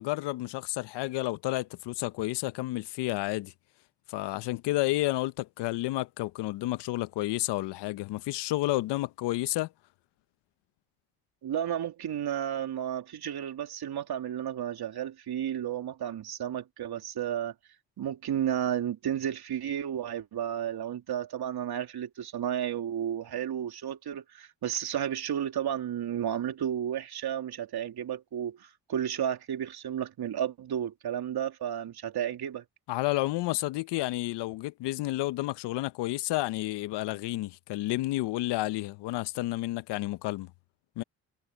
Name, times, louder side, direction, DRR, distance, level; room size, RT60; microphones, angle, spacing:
voice 1, 0.0-3.5 4.1-9.7 32.9-40.5 41.0-41.1, left 18 dB, 75° left, 1.1 m, -31 dB
voice 2, 11.4-17.5 18.0-32.6, right 10 dB, 60° right, 3.4 m, -32 dB
hypercardioid pair, 50°, 42 cm